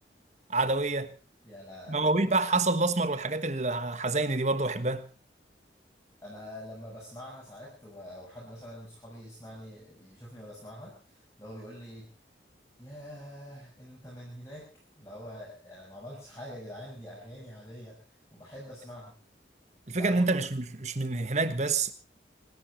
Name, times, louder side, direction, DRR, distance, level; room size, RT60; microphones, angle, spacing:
voice 1, 0.5-1.1 1.9-5.1 19.9-21.9, right 3 dB, 40° right, 1.4 m, -27 dB
voice 2, 1.4-2.1 6.2-12.1 12.8-14.7 15.0-18.0 18.3-19.1 19.9-20.2, equal, 15° left, 6.4 m, -45 dB
26.5 x 12.0 x 4.4 m
head